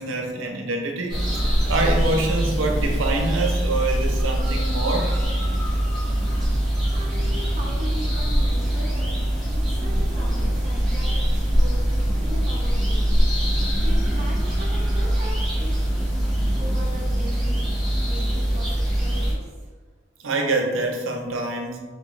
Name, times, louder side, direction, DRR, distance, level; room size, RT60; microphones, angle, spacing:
voice 1, 0.0-5.2 20.2-21.8, right 2 dB, 80° right, 2 dB, 0.7 m, -26 dB
sound 1, 1.1-19.3, equal, ahead, 1.0 m, -23 dB
voice 2, 6.8-9.2 9.5-13.2 13.4-16.3 16.5-19.7, equal, 35° right, -3 dB, 0.8 m, -39 dB
3.9 x 3.4 x 3.1 m, 1.4 s
head